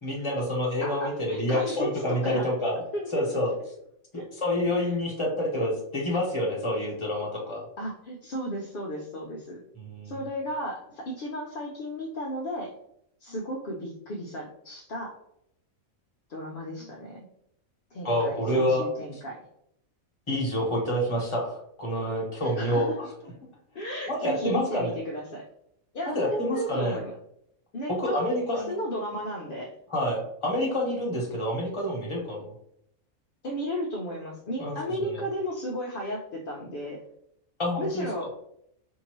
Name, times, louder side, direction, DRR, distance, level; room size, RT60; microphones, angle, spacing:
voice 1, 0.0-2.8 3.1-3.5 4.4-7.6 9.7-10.1 18.0-18.8 20.3-23.1 24.1-24.9 26.1-27.0 27.9-28.7 29.9-32.5 34.6-35.2 37.6-38.1, left 1 dB, 25° left, -3 dB, 1.1 m, -28 dB
voice 2, 0.8-2.5 2.9-3.1 4.1-4.3 7.8-9.6 10.0-12.7 13.2-15.1 16.3-17.2 17.9-19.4 22.4-23.0 23.7-25.5 25.9-27.1 27.7-28.4 28.7-29.7 33.4-37.0 37.8-38.3, equal, 55° left, -2 dB, 0.6 m, -34 dB
4.6 x 2.7 x 2.9 m, 0.73 s
omnidirectional pair, 1.5 m